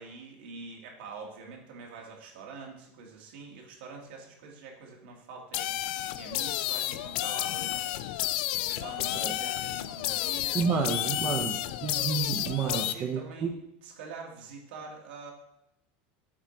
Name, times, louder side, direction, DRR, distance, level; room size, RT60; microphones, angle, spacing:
voice 1, 0.0-10.6 11.1-11.4 12.6-13.5 13.8-15.3, right 4 dB, 75° right, 0 dB, 1.7 m, -45 dB
sound 1, 5.5-12.9, left 14 dB, 65° left, 0.3 m, -31 dB
voice 2, 10.5-13.5, right 6 dB, 25° right, 3 dB, 0.5 m, -30 dB
7.2 x 4.4 x 3.8 m, 0.83 s
supercardioid pair, 160°, 5 cm